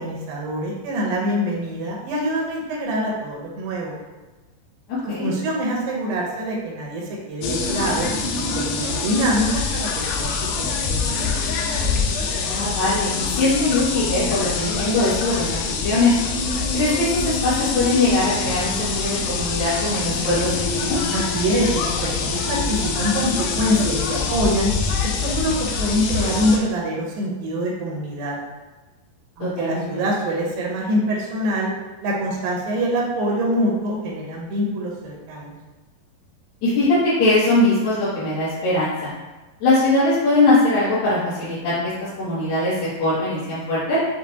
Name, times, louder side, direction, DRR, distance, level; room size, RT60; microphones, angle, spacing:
voice 1, 0.0-3.9 5.0-7.0 7.3-8.1 8.4-11.5 21.1-24.7 25.0-28.4 29.4-31.7 32.0-35.5, equal, 80° right, -2 dB, 2.6 m, -24 dB
voice 2, 4.9-5.3 12.4-16.1 16.7-21.0 29.4-29.9 36.6-39.1 39.6-44.0, left 2 dB, 60° left, -14 dB, 2.5 m, -21 dB
sound 1, 7.4-26.6, left 5 dB, 90° left, 1.7 m, -25 dB
7.3 x 2.5 x 2.8 m, 1.2 s
omnidirectional pair, 4.0 m